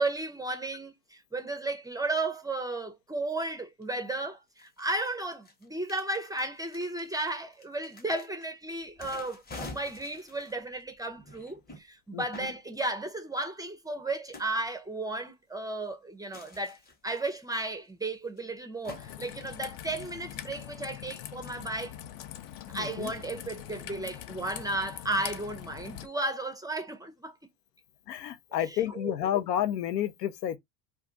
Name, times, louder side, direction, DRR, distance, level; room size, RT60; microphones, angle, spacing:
voice 1, 0.0-16.8 17.0-22.0 22.7-27.3 28.5-29.2, right 2 dB, 10° right, 0.4 m, -34 dB
sound 1, 3.8-3.9 4.6-8.5 8.8-11.8 12.3-12.6 14.3-14.5 16.3-17.5 18.0-18.1 18.4-18.5 18.8-19.0, left 2 dB, 20° left, 0.8 m, -47 dB
Raindrop / Trickle dribble, 18.9-26.1, left 11 dB, 50° left, 0.5 m, -43 dB
voice 2, 22.7-23.1 28.1-30.6, left 11 dB, 85° left, 0.7 m, -30 dB
2.4 x 2.3 x 3.8 m
hypercardioid pair, 90°, 48 cm